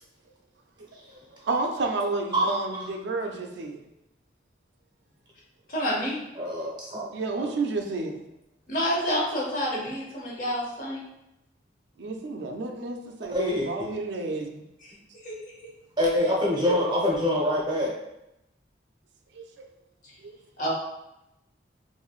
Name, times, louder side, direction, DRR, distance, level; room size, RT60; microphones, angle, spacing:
voice 1, 1.5-3.8 7.1-8.2 12.0-14.6 19.3-19.7 20.2-20.4, right 3 dB, 80° right, 3 dB, 0.4 m, -31 dB
voice 2, 5.7-6.2 8.7-11.0 14.8-15.6 16.7-16.8 20.6-20.7, equal, 45° left, -4 dB, 0.8 m, -29 dB
voice 3, 6.4-7.1 7.3-7.5 13.3-14.0 16.0-17.9, left 1 dB, 25° right, -3 dB, 0.6 m, -25 dB
3.1 x 2.6 x 2.3 m, 0.87 s
head